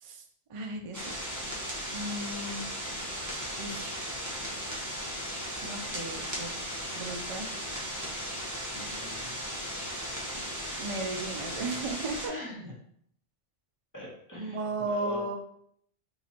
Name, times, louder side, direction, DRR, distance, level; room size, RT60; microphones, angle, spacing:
voice 1, 0.5-1.4 1.9-2.6 3.6-4.0 5.6-6.5 6.9-7.6 10.7-12.2 14.4-15.4, right 2 dB, 55° right, 3 dB, 0.3 m, -35 dB
sound 1, 0.9-12.3, equal, 20° right, 0.7 m, -36 dB
voice 2, 8.7-9.4 12.3-12.7 13.9-15.2, left 1 dB, 15° left, -5 dB, 1.0 m, -42 dB
2.9 x 2.5 x 4.1 m, 0.66 s
omnidirectional pair, 1.2 m